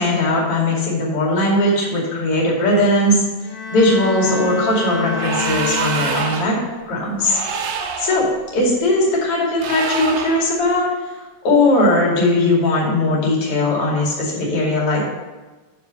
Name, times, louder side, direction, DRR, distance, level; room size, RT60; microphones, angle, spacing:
voice 1, 0.0-3.2 3.7-6.6 6.9-7.4 8.0-8.2 8.5-10.9 11.4-15.1, left 1 dB, 40° left, -3 dB, 2.9 m, -18 dB
Bowed string instrument, 3.4-6.8, left 4 dB, 65° left, 2.5 m, -27 dB
sound 1, 5.1-6.6 7.2-8.2 9.6-10.5, right 6 dB, 70° right, 2.2 m, -26 dB
9.4 x 4.4 x 6.8 m, 1.2 s
omnidirectional pair, 4.6 m